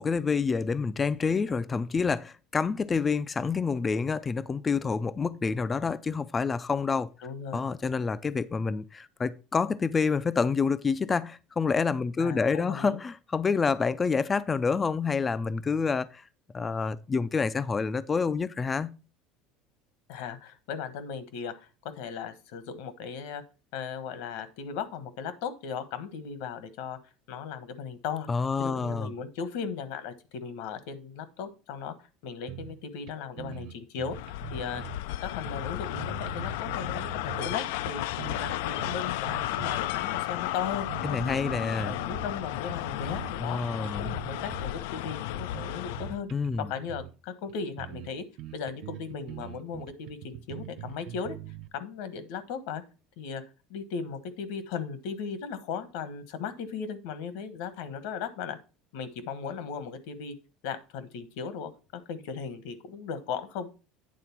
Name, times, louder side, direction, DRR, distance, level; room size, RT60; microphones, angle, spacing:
voice 1, 0.0-7.1 7.5-16.2 16.5-18.9 28.3-29.1 41.0-42.0 43.4-44.1 46.3-46.7, left 5 dB, 15° left, 0.3 m, -28 dB
voice 2, 7.2-7.7 12.2-13.0 20.1-23.4 23.7-27.0 27.3-28.3 28.6-31.9 32.2-34.2 34.5-34.8 35.2-38.0 38.4-41.4 41.8-46.3 46.6-48.2 48.5-51.4 51.7-52.8 53.2-53.4 53.7-58.6 58.9-60.3 60.6-63.7, left 6 dB, 70° left, 1.2 m, -37 dB
sound 1, 32.5-32.8 33.1-33.2 33.4-35.0 35.5-37.5 37.9-39.8 40.1-40.3 40.7-42.4 42.7-43.3 43.6-44.7 45.1-47.1 47.5-47.6 47.8-48.1 48.4-51.7, right 13 dB, 50° right, 0.6 m, -43 dB
sound 2, 34.1-46.2, left 15 dB, 90° left, 0.3 m, -33 dB
9.2 x 3.8 x 5.8 m
cardioid pair, 160°, 0 cm